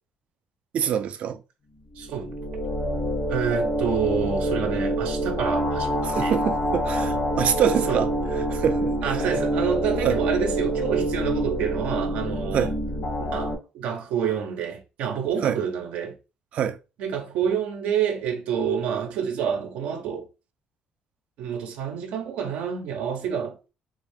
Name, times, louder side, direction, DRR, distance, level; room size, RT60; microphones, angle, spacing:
voice 1, 0.7-1.4 6.0-8.1 8.4-9.4 10.0-10.2 12.5-12.8 15.4-15.6 16.5-16.8, right 9 dB, 60° right, 0.4 m, -25 dB
sound 1, 2.0-13.5, equal, 70° left, 1.6 m, -26 dB
voice 2, 2.0-2.3 3.3-6.4 7.9-8.1 9.0-12.7 13.2-16.2 17.0-20.3 21.4-23.7, right 8 dB, 85° right, 0.7 m, -28 dB
3.6 x 2.6 x 3.6 m
cardioid pair, 125°, 3 cm